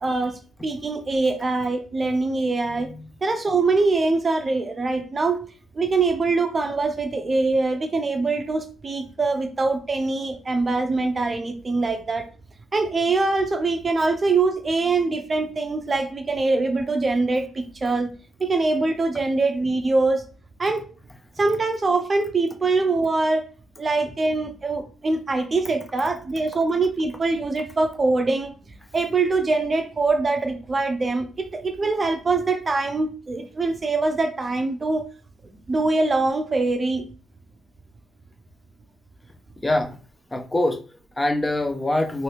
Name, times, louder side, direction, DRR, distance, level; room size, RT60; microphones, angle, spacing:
voice 1, 0.0-2.9 3.2-5.4 5.7-12.3 12.7-18.1 18.4-20.2 20.6-20.9 21.4-23.4 23.8-28.5 28.9-35.1 35.7-37.0, right 3 dB, 30° right, 0.5 m, -23 dB
voice 2, 39.6-40.0 40.3-42.2, left 1 dB, 15° left, 0.6 m, -24 dB
2.8 x 2.6 x 3.3 m
cardioid pair, 90°, 0 cm